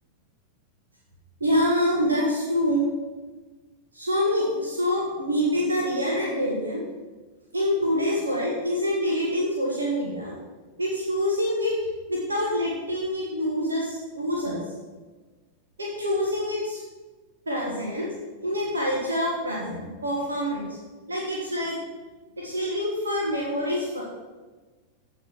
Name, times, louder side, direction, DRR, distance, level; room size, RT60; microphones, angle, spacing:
voice 1, 1.4-2.8 3.9-6.8 7.5-10.3 10.8-11.7 12.1-14.6 15.8-16.8 17.4-18.1 18.4-20.8 21.1-21.8 22.4-24.0, equal, 75° right, -4 dB, 1.6 m, -26 dB
14.5 x 5.1 x 4.6 m, 1.3 s
figure-of-eight pair, 90°, 0 cm